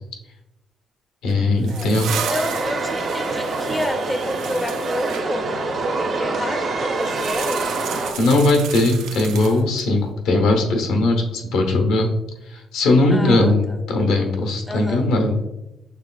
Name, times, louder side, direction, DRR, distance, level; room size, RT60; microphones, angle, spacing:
voice 1, 1.2-2.1 8.2-12.1 12.5-15.4, left 2 dB, 90° left, 3 dB, 0.8 m, -19 dB
sound 1, 1.3-5.3 7.0-9.9, right 9 dB, 90° right, 0.3 m, -34 dB
sound 2, 2.1-8.1, right 3 dB, 65° right, 0.8 m, -25 dB
voice 2, 2.3-7.6 13.1-13.8 14.7-15.0, left 1 dB, 10° left, 5 dB, 0.5 m, -29 dB
6.6 x 3.1 x 2.3 m, 0.97 s
cardioid pair, 90°, 0 cm